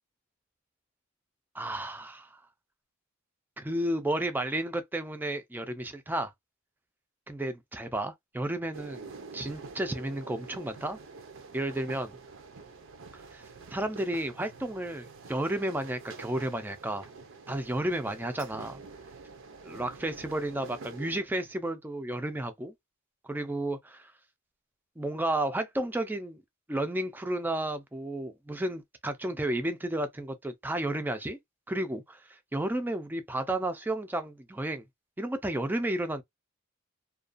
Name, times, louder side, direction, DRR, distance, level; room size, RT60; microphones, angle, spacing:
voice 1, 1.5-2.3 3.6-6.3 7.3-9.1 9.3-11.0 11.5-12.1 13.3-13.4 13.7-17.1 17.5-18.8 19.6-22.7 23.2-24.1 25.0-26.4 26.7-31.4 31.7-32.2 32.5-34.8 35.2-36.2, right 1 dB, 10° right, 0.4 m, -32 dB
sound 1, 8.7-21.2, right 4 dB, 65° right, 0.5 m, -47 dB
2.4 x 2.3 x 2.4 m
head